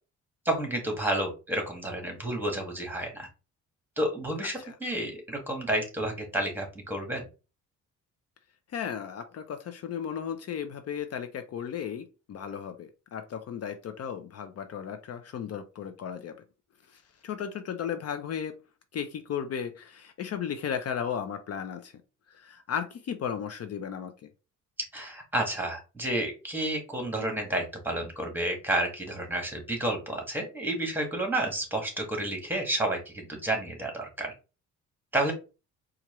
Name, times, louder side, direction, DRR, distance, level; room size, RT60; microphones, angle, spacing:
voice 1, 0.4-3.3 4.0-7.3 24.9-34.3 35.1-35.3, right 1 dB, 5° right, 1.6 m, -30 dB
voice 2, 8.7-16.4 16.9-18.6 18.9-21.9 22.3-24.1, left 8 dB, 55° left, 0.6 m, -35 dB
4.3 x 2.5 x 3.0 m
cardioid pair, 90°, 30 cm